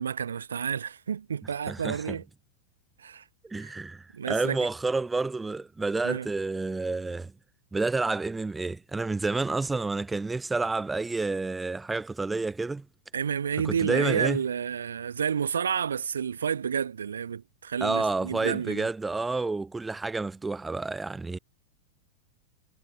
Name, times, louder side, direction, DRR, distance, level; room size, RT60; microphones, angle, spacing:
voice 1, 0.0-2.2 3.0-3.2 3.6-3.7 4.1-4.6 6.0-6.3 13.1-18.9, right 7 dB, 70° right, 1.8 m, -30 dB
voice 2, 1.7-2.2 3.4-7.3 7.7-12.8 13.6-14.4 17.8-21.4, right 3 dB, 10° right, 0.4 m, -29 dB
figure-of-eight pair, 90°, 0 cm